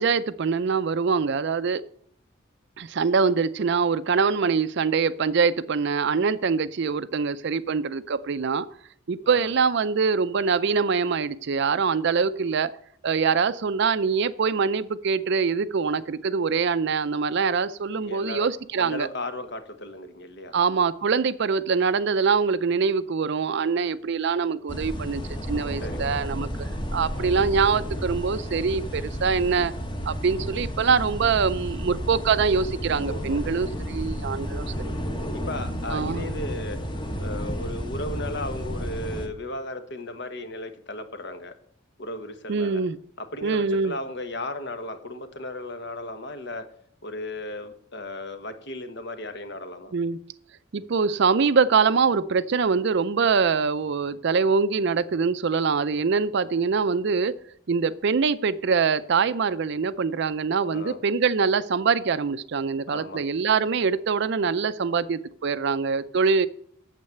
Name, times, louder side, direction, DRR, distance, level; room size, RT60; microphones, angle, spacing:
voice 1, 0.0-1.8 2.8-8.7 9.1-12.7 13.0-19.1 20.5-25.2 25.5-29.7 30.1-34.6 35.9-36.2 42.5-43.0 43.4-43.9 49.9-50.2 50.7-57.4 57.7-66.5, right 5 dB, 55° right, 14 dB, 0.4 m, -24 dB
voice 2, 18.0-18.5 18.8-20.5 25.8-26.3 33.1-33.4 35.3-36.8 37.2-41.5 42.0-42.8 43.2-46.7 47.0-49.9 60.7-61.0 62.9-63.2, left 1 dB, 55° left, 8 dB, 1.3 m, -35 dB
sound 1, 24.7-39.3, equal, 25° left, 1.2 m, -32 dB
8.7 x 7.4 x 7.6 m, 0.65 s
head